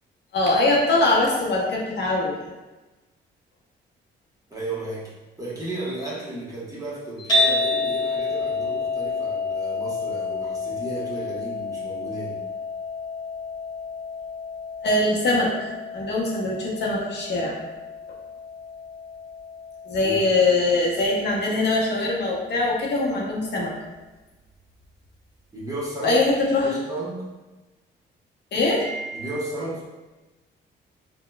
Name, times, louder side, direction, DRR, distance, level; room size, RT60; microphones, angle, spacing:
voice 1, 0.3-2.5 14.8-17.6 19.9-23.7 26.0-26.7 28.5-29.3, left 2 dB, 60° left, -3 dB, 0.7 m, -22 dB
voice 2, 4.5-5.1 5.4-12.4 20.0-20.2 25.5-26.2 26.6-27.2 29.1-29.8, right 2 dB, 15° right, -7 dB, 1.0 m, -34 dB
sound 1, 7.3-23.5, left 3 dB, 20° left, 0.9 m, -30 dB
3.7 x 2.2 x 2.2 m, 1.1 s
cardioid pair, 90°, 20 cm